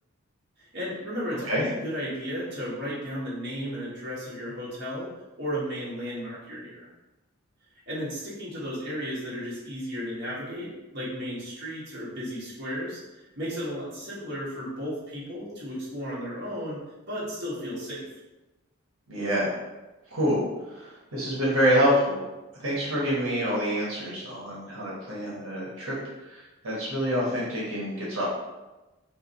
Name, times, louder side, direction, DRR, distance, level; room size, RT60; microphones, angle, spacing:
voice 1, 0.6-5.1 5.4-6.9 7.9-13.0 13.4-18.1, equal, 50° right, -8 dB, 1.3 m, -34 dB
voice 2, 19.1-19.5 20.1-20.4 20.7-22.2 22.6-25.9 26.3-28.2, equal, 75° right, -6 dB, 1.3 m, -26 dB
3.6 x 2.6 x 4.1 m, 1.1 s
head